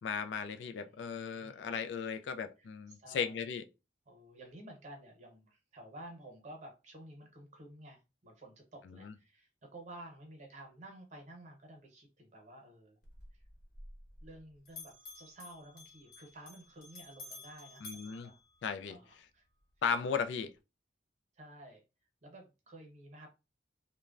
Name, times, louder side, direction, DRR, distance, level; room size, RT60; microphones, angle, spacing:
voice 1, 0.0-3.6 8.9-9.1 17.8-18.3 18.6-19.0 19.8-20.5, left 6 dB, 80° left, 0.3 m, -36 dB
voice 2, 0.7-1.8 2.6-3.4 4.1-13.0 13.3-13.4 14.2-18.4 18.9-19.5 21.4-21.8 22.2-23.3, right 1 dB, 40° right, 0.9 m, -53 dB
Bell, 13.0-14.4 14.7-19.1, left 2 dB, 55° left, 1.0 m, -52 dB
3.0 x 2.2 x 2.4 m
head